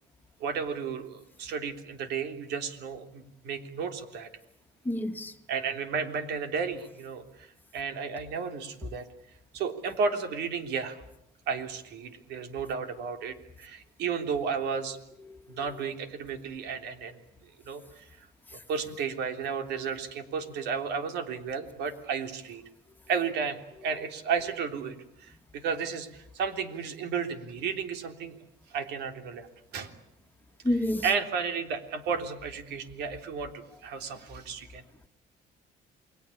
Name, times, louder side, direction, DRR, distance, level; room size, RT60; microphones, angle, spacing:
voice 1, 0.4-4.3 5.5-7.5 7.7-9.0 9.5-11.0 11.5-15.0 15.5-17.2 17.7-18.3 18.7-22.6 23.1-28.4 28.7-29.5 29.7-29.9 31.0-34.8, right 6 dB, 80° right, 3.5 m, -33 dB
voice 2, 4.9-5.3 15.3-15.4 30.6-31.0, left 1 dB, 10° left, 2.0 m, -28 dB
29.0 x 22.0 x 8.7 m
cardioid pair, 110°, 17 cm